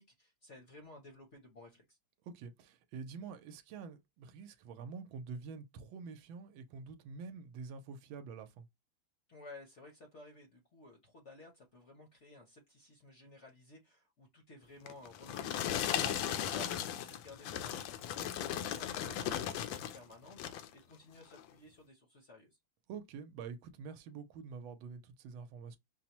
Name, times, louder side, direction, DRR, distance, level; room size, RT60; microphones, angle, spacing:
voice 1, 0.0-2.0 9.3-22.6, left 2 dB, 50° left, 0.9 m, -55 dB
voice 2, 2.2-8.7 16.0-16.2 22.9-25.8, right 5 dB, 85° right, 1.4 m, -47 dB
sound 1, 14.9-20.0 20.3-20.7 21.3-21.5, left 10 dB, 75° left, 1.3 m, -37 dB
5.6 x 2.0 x 2.9 m
omnidirectional pair, 2.2 m